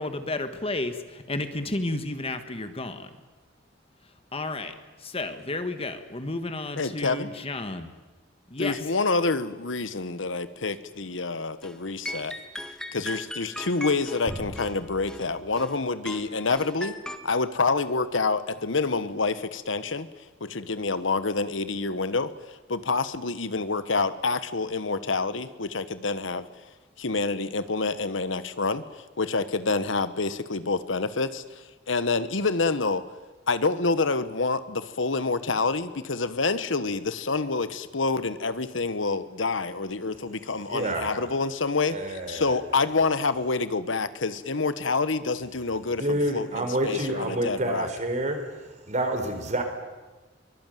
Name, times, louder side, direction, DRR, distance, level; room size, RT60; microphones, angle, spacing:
voice 1, 0.0-3.1 4.3-4.7 5.0-7.9 8.5-8.8, left 2 dB, 30° left, 9 dB, 1.5 m, -32 dB
voice 2, 6.8-7.3 8.6-12.3 12.9-16.9 17.2-20.1 20.4-26.5 27.0-33.0 33.5-47.9, left 3 dB, 85° left, 13 dB, 1.2 m, -27 dB
sound 1, 11.6-11.8 12.1-15.8 16.1-17.2, equal, 5° left, 1.8 m, -38 dB
sound 2, 14.3-16.2, equal, 15° right, 4.4 m, -41 dB
voice 3, 40.7-41.1 41.9-42.5 46.0-48.4 48.9-49.6, right 1 dB, 40° right, 6 dB, 4.2 m, -28 dB
23.5 x 21.0 x 9.3 m, 1.2 s
head